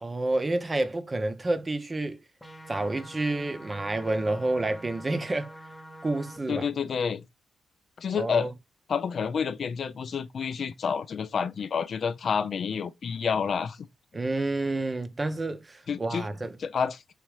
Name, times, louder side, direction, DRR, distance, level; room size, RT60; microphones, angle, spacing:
voice 1, 0.0-2.2 2.7-5.5 6.0-6.7 8.1-8.5 14.1-16.5, right 2 dB, 30° right, 0.6 m, -29 dB
sound 1, 2.4-6.4, right 1 dB, 10° left, 0.8 m, -46 dB
voice 2, 6.5-7.2 8.0-8.5 8.9-13.9 15.9-16.3 16.6-17.0, left 6 dB, 65° left, 0.3 m, -29 dB
3.6 x 2.9 x 3.1 m
supercardioid pair, 55°, 0 cm